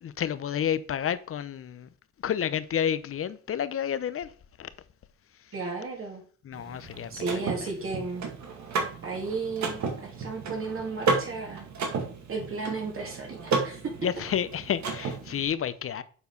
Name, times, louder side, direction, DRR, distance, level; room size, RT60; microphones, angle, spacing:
voice 1, 0.0-1.9 2.2-4.3 4.6-4.7 6.4-7.7 14.0-16.0, left 9 dB, 45° left, 0.7 m, -30 dB
voice 2, 5.5-6.2 7.1-8.3 9.0-11.6 12.3-13.8, right 4 dB, 45° right, 3.1 m, -34 dB
Car / Mechanisms, 6.5-15.5, right 4 dB, 65° right, 2.1 m, -33 dB
7.1 x 4.5 x 5.3 m
cardioid pair, 90°, 30 cm